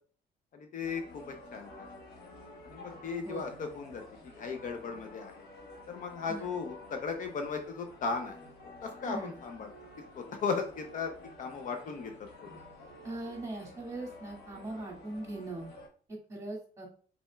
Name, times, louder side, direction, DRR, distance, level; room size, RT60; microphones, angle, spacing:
voice 1, 0.5-1.9 2.6-4.0 4.4-5.3 5.9-8.4 8.8-9.7 10.2-11.1 11.4-12.1 12.4-12.6, left 5 dB, 50° left, 5 dB, 0.7 m, -36 dB
sound 1, 0.8-15.9, left 1 dB, 70° left, 1.5 m, -51 dB
voice 2, 6.3-6.6 9.0-9.4 13.0-15.7 16.3-16.9, right 2 dB, 20° right, -1 dB, 2.1 m, -40 dB
5.3 x 4.3 x 2.3 m, 0.43 s
cardioid pair, 110°, 17 cm